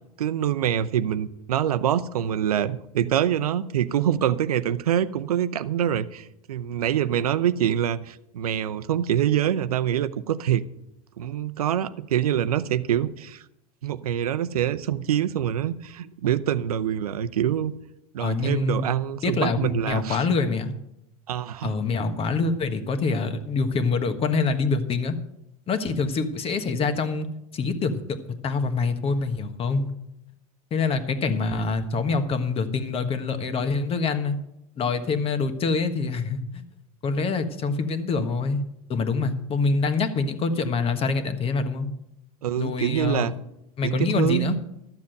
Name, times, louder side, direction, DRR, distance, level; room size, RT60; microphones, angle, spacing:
voice 1, 0.2-10.6 11.2-13.4 13.8-17.7 18.1-20.2 21.3-21.7 42.4-43.3 43.8-44.6, right 10 dB, 85° right, 12 dB, 0.6 m, -25 dB
voice 2, 18.2-18.8 19.2-20.7 21.6-25.1 25.7-27.3 27.5-28.0 28.4-29.9 30.7-34.4 34.8-36.6 37.0-38.6 38.9-41.9 42.6-43.3 43.8-44.6, left 4 dB, 30° left, 9 dB, 1.4 m, -25 dB
13.0 x 7.3 x 6.6 m, 0.82 s
hypercardioid pair, 100°, 19 cm